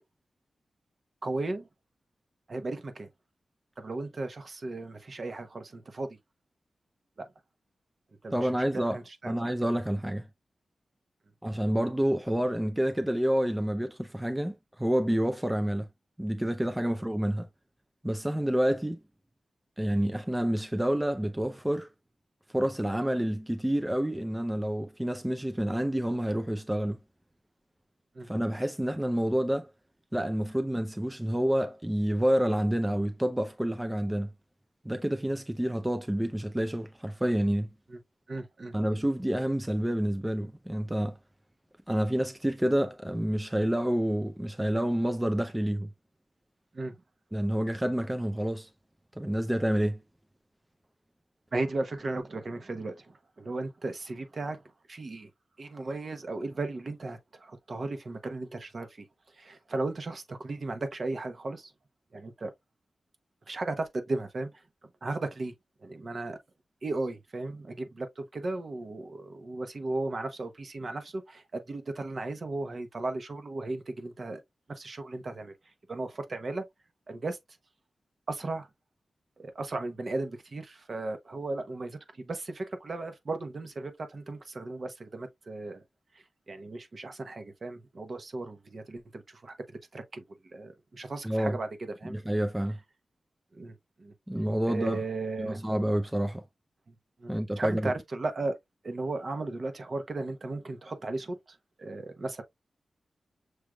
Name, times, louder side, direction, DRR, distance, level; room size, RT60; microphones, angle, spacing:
voice 1, 1.2-1.7 2.5-3.1 3.8-6.2 7.2-7.3 8.2-9.3 16.9-17.0 28.1-28.3 37.9-38.0 38.3-38.8 46.7-47.0 51.5-54.6 54.9-55.3 55.6-59.1 59.3-61.7 62.1-62.5 63.5-64.6 65.0-65.5 65.8-66.4 66.8-74.4 74.7-75.5 75.9-76.6 77.1-77.4 78.3-78.7 79.4-85.8 86.1-92.2 93.5-94.1 94.6-95.6 96.9-98.5 98.8-102.4, right 2 dB, 50° right, 0.9 m, -36 dB
voice 2, 8.3-9.0 9.2-10.3 11.4-15.9 16.2-17.5 18.0-19.0 19.8-21.9 22.5-27.0 28.3-29.7 30.1-34.3 34.8-37.7 38.7-41.2 41.9-45.9 47.3-48.7 49.2-50.0 91.2-91.6 92.1-92.8 94.3-95.0 95.4-96.4 97.3-97.9, equal, 10° right, 0.4 m, -28 dB
6.2 x 3.3 x 2.3 m
wide cardioid pair, 100°, 0 cm